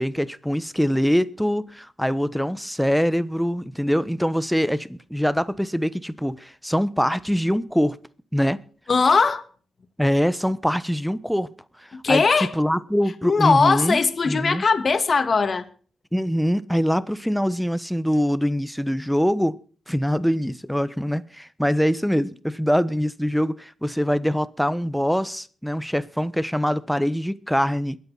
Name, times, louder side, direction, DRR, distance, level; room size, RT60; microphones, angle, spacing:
voice 1, 0.0-8.0 8.3-8.6 10.0-11.5 11.8-14.0 14.3-14.6 16.1-19.6 19.9-28.0, equal, ahead, 1.1 m, -23 dB
voice 2, 8.9-9.4 11.9-12.5 13.2-15.6, left 4 dB, 50° left, 1.9 m, -19 dB
22.0 x 8.4 x 4.1 m
supercardioid pair, 50°, 0 cm